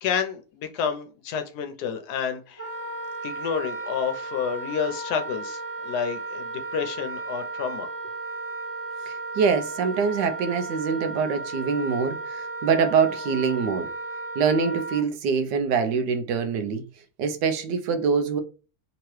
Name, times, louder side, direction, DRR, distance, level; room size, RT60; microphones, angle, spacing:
voice 1, 0.0-2.7 3.2-7.9, left 7 dB, 75° left, 1.2 m, -29 dB
Wind instrument woodwind instrument, 2.6-15.0, right 3 dB, 10° right, 0.8 m, -34 dB
voice 2, 9.1-13.9 14.4-16.8 17.2-18.4, right 5 dB, 90° right, 1.3 m, -24 dB
3.4 x 2.9 x 3.1 m
omnidirectional pair, 1.8 m